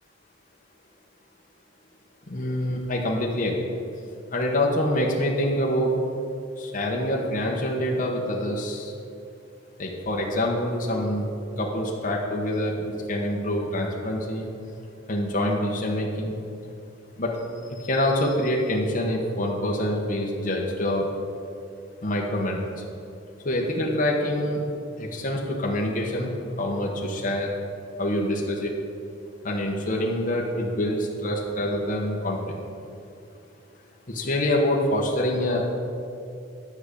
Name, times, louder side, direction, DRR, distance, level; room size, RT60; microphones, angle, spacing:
voice 1, 2.3-3.8 4.3-5.9 6.6-8.9 9.8-11.3 11.6-14.5 15.1-16.4 17.2-17.4 17.7-21.1 22.0-22.7 23.4-24.6 25.0-26.3 26.6-27.5 28.0-28.7 29.4-32.6 34.1-35.7, left 1 dB, 45° left, -2 dB, 1.1 m, -26 dB
10.5 x 5.1 x 8.3 m, 2.6 s
head